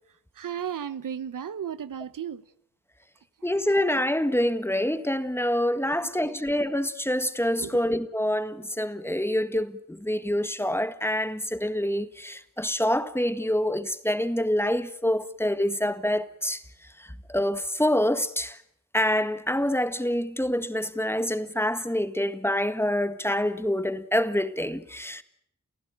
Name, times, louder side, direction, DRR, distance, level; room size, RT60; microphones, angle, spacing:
voice 1, 0.4-2.4 7.6-7.7, right 8 dB, 75° right, 0.9 m, -34 dB
voice 2, 3.4-16.6 17.0-18.6 18.9-25.2, left 1 dB, 5° left, 1.7 m, -26 dB
29.0 x 15.0 x 9.0 m
cardioid pair, 50°, 32 cm